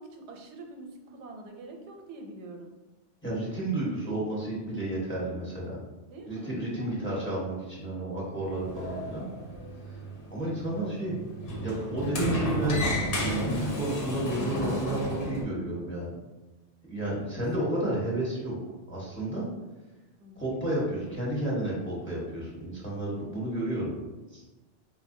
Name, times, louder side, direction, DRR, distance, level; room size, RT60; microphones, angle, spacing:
voice 1, 0.0-2.7 6.1-7.3 17.6-17.8 20.2-20.5, right 2 dB, 90° right, 2 dB, 0.9 m, -45 dB
voice 2, 3.2-5.8 6.3-9.2 9.9-10.0 10.3-11.2 11.6-16.2 16.9-19.4 20.4-23.9 24.3-24.4, right 1 dB, 10° left, -7 dB, 0.9 m, -32 dB
Sliding door, 8.4-15.4, equal, 55° left, 0.9 m, -32 dB
4.2 x 2.1 x 2.6 m, 1.1 s
omnidirectional pair, 1.1 m